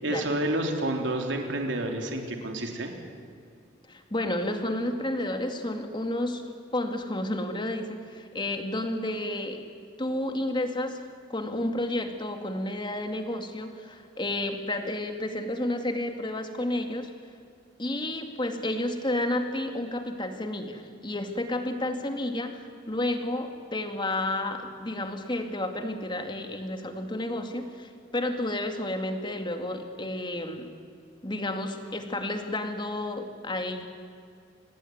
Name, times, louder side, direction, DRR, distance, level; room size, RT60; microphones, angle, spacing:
voice 1, 0.0-2.9, right 1 dB, 70° right, 3 dB, 3.8 m, -29 dB
voice 2, 3.9-6.4 6.7-9.6 10.0-17.1 17.8-30.7 31.2-33.8, left 1 dB, 25° left, 6 dB, 2.4 m, -31 dB
26.5 x 19.5 x 9.5 m, 2.3 s
head